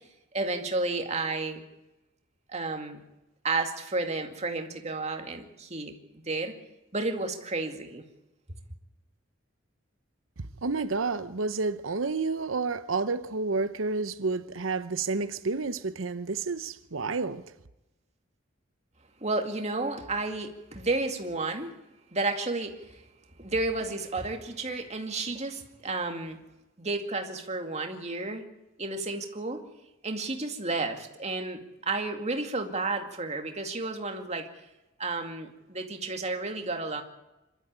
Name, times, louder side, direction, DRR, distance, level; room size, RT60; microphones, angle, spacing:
voice 1, 0.3-1.6 2.5-3.0 3.4-6.5 6.9-8.0 19.2-21.8 22.1-23.0 23.4-26.4 26.8-28.5 28.8-29.6 30.0-34.5 35.0-37.0, right 3 dB, 35° right, 2.3 m, -32 dB
voice 2, 10.4-17.4, right 4 dB, 85° right, 0.9 m, -30 dB
26.0 x 13.0 x 8.9 m
head